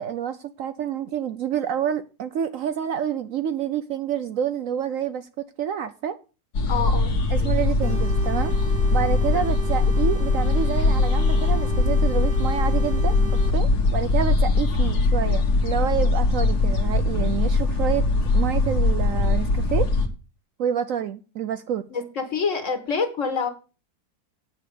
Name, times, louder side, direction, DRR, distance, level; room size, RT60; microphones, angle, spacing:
voice 1, 0.0-6.2 7.3-8.5 8.9-13.1 13.5-18.1 18.3-19.9 20.6-21.8, right 9 dB, 65° right, 0.9 m, -28 dB
sound 1, 6.5-20.1, left 3 dB, 75° left, 1.9 m, -21 dB
voice 2, 6.7-7.1 21.9-23.5, left 5 dB, 50° left, 1.8 m, -26 dB
sound 2, 7.8-13.5, right 1 dB, 30° right, 1.7 m, -37 dB
8.5 x 6.6 x 6.7 m
omnidirectional pair, 1.7 m